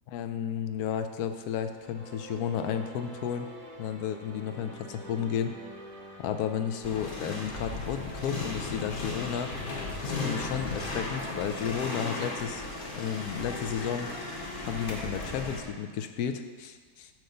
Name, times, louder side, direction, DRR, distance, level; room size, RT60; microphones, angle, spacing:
voice 1, 0.1-3.5 3.8-5.5 6.2-9.5 10.0-12.6 12.9-14.1 14.7-17.1, left 8 dB, 80° left, 7 dB, 1.1 m, -33 dB
sound 1, 1.5-13.9, right 2 dB, 30° right, 0.6 m, -48 dB
sound 2, 6.8-15.6, left 3 dB, 40° left, 1.0 m, -36 dB
9.3 x 3.1 x 6.5 m, 1.5 s
omnidirectional pair, 1.6 m